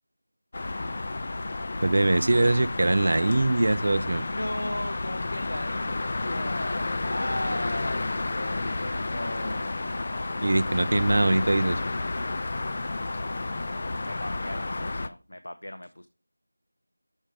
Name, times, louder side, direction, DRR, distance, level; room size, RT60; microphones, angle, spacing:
sound 1, 0.5-15.1, left 2 dB, 35° left, 0.4 m, -31 dB
voice 1, 1.8-4.3 10.4-11.8, right 2 dB, 45° right, 0.4 m, -22 dB
voice 2, 4.1-10.3 14.0-16.1, left 1 dB, 80° left, 0.6 m, -37 dB
6.3 x 5.1 x 4.8 m
figure-of-eight pair, 175°, 0 cm